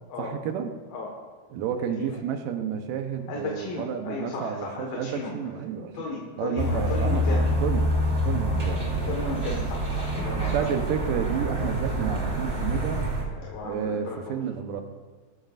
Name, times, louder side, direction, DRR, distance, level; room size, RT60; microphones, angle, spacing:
voice 1, 0.2-0.7 1.5-6.0 6.4-8.0 8.2-9.2 10.3-13.1 13.6-14.8, right 7 dB, 70° right, 5 dB, 2.4 m, -31 dB
voice 2, 3.3-5.3 5.9-7.5 9.0-10.7 13.3-14.4, left 3 dB, 75° left, -2 dB, 3.4 m, -34 dB
sound 1, 6.6-13.2, right 1 dB, 20° right, 2.8 m, -26 dB
18.5 x 14.5 x 2.6 m, 1.4 s
omnidirectional pair, 4.2 m